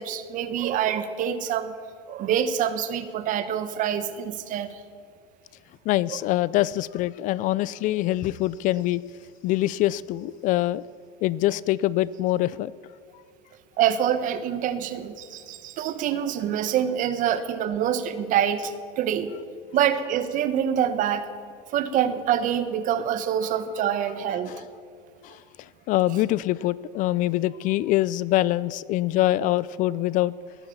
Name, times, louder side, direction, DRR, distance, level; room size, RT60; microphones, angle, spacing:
voice 1, 0.0-1.7 2.1-4.8 6.1-6.2 13.8-19.3 19.7-21.3 21.7-24.7, right 9 dB, 45° right, 12 dB, 1.3 m, -26 dB
voice 2, 5.9-9.0 9.4-10.8 11.2-12.7 24.5-24.6 25.2-30.3, left 15 dB, 45° left, 20 dB, 0.4 m, -24 dB
20.5 x 9.9 x 7.1 m, 2.2 s
supercardioid pair, 130°, 19 cm